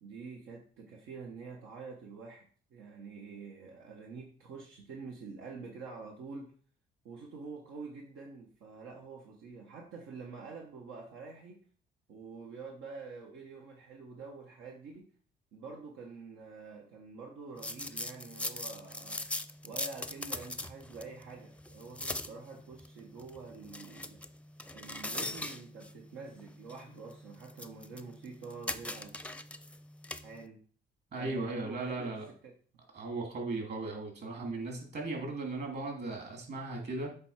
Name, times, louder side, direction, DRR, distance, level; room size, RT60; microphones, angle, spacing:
voice 1, 0.0-6.5 7.0-11.6 12.1-15.1 15.5-19.2 19.6-24.2 24.7-29.1 30.2-30.6 31.2-32.1 32.4-32.5, right 4 dB, 90° right, -1 dB, 1.3 m, -47 dB
sound 1, 17.6-30.5, left 1 dB, 5° left, 0.5 m, -42 dB
voice 2, 31.1-32.3 32.9-37.1, right 3 dB, 55° right, 1 dB, 3.1 m, -37 dB
8.1 x 3.4 x 5.8 m, 0.44 s
cardioid pair, 90°, 20 cm